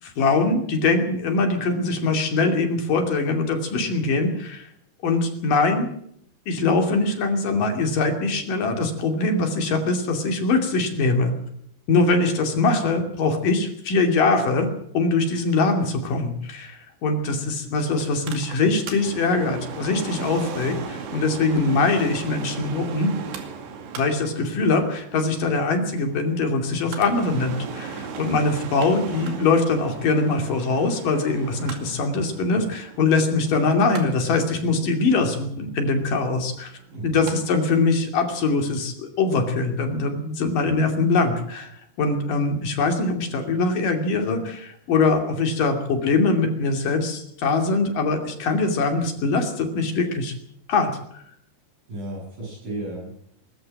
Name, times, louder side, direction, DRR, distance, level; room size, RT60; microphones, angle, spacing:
voice 1, 0.0-4.7 5.0-5.9 6.5-11.3 11.9-14.7 14.9-23.1 24.0-36.7 37.0-41.7 42.0-50.3 50.7-50.9, left 3 dB, 45° left, 4 dB, 3.7 m, -22 dB
Mechanical fan, 18.0-37.4 37.7-37.8, right 6 dB, 60° right, 4.3 m, -37 dB
voice 2, 36.9-37.3 51.9-53.2, right 1 dB, 40° right, -4 dB, 8.6 m, -34 dB
22.0 x 13.0 x 8.9 m, 0.69 s
omnidirectional pair, 6.0 m